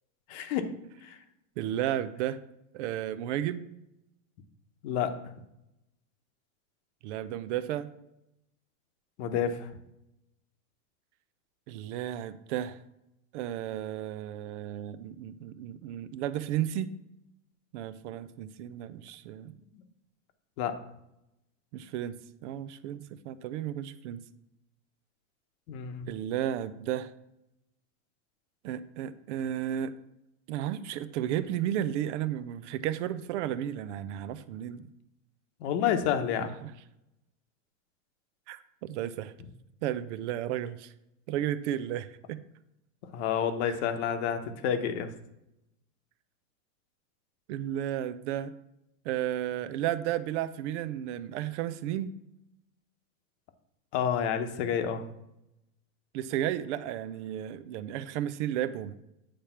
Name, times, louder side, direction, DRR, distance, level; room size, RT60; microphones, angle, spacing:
voice 1, 0.3-0.7 1.0-1.2 4.8-5.2 9.2-9.7 19.7-19.8 20.6-20.8 25.7-26.1 35.6-36.5 43.1-45.1 53.9-55.0, left 8 dB, 55° left, 8 dB, 0.9 m, -29 dB
voice 2, 1.6-2.4 2.7-3.7 7.0-7.9 11.7-12.8 13.3-16.9 17.7-19.5 21.7-24.2 26.1-27.1 28.6-29.9 30.5-34.9 36.4-36.7 38.5-39.3 39.8-40.9 41.3-42.4 43.6-43.8 47.5-48.5 49.0-52.1 56.1-59.0, right 11 dB, 60° right, 14 dB, 0.6 m, -33 dB
8.8 x 3.4 x 5.7 m, 0.86 s
supercardioid pair, 150°, 41 cm